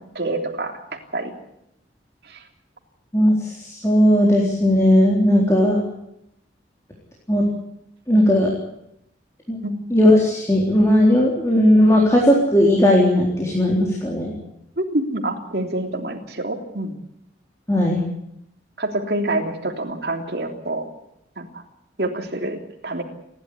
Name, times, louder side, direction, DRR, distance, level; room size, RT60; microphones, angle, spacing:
voice 1, 0.1-0.7 1.1-1.3 2.3-2.4 9.6-9.8 14.8-17.0 18.8-20.8 21.4-21.6 22.0-23.0, right 1 dB, 60° right, 2 dB, 3.4 m, -26 dB
voice 2, 3.1-5.8 7.3-7.4 8.1-8.5 9.5-9.6 9.9-14.3 17.7-18.0, left 1 dB, 15° left, -2 dB, 3.9 m, -17 dB
29.0 x 12.0 x 9.8 m, 0.80 s
head